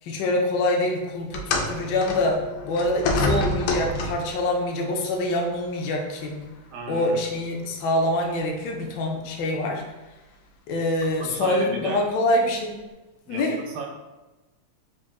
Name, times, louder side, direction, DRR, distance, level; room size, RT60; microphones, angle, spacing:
voice 1, 0.0-6.4 6.9-9.8 10.7-12.7 13.3-13.6, left 1 dB, 70° left, 1 dB, 1.1 m, -25 dB
sound 1, 1.3-4.4 5.4-5.5 6.4-6.5, left 2 dB, 90° left, 1.4 m, -26 dB
voice 2, 6.7-7.2 11.2-12.0 13.2-13.4 13.7-13.9, right 4 dB, 80° right, 1 dB, 1.5 m, -35 dB
3.8 x 3.7 x 2.3 m, 1.1 s
omnidirectional pair, 2.3 m